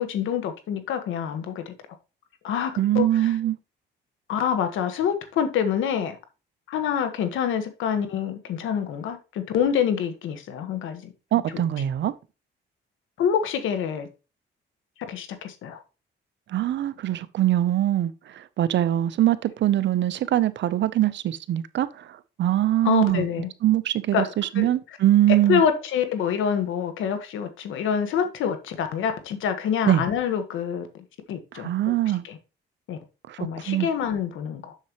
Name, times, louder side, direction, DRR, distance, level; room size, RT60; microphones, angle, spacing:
voice 1, 0.0-1.7 2.4-3.4 4.3-6.2 6.7-11.1 13.2-14.1 15.1-15.8 22.8-23.5 24.1-24.7 25.5-31.9 32.2-32.4 32.9-33.0 33.4-34.7, left 8 dB, 85° left, 1.4 m, -26 dB
voice 2, 2.8-3.6 11.3-12.1 16.5-21.9 22.4-23.2 23.6-25.6 29.9-30.0 31.5-32.2 33.3-33.4 33.7-33.9, right 13 dB, 65° right, 0.7 m, -22 dB
7.2 x 6.8 x 3.0 m
cardioid pair, 90°, 20 cm